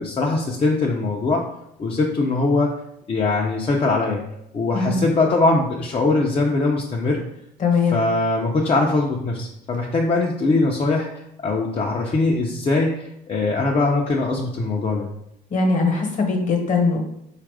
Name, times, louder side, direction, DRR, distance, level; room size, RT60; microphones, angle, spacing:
voice 1, 0.0-1.4 1.8-2.7 3.1-4.2 4.5-7.2 7.9-15.1, left 3 dB, 35° left, -2 dB, 0.6 m, -21 dB
voice 2, 4.7-5.1 7.6-8.0 15.5-17.0, left 4 dB, 50° left, 3 dB, 1.1 m, -20 dB
4.1 x 2.5 x 4.7 m, 0.79 s
cardioid pair, 110°, 17 cm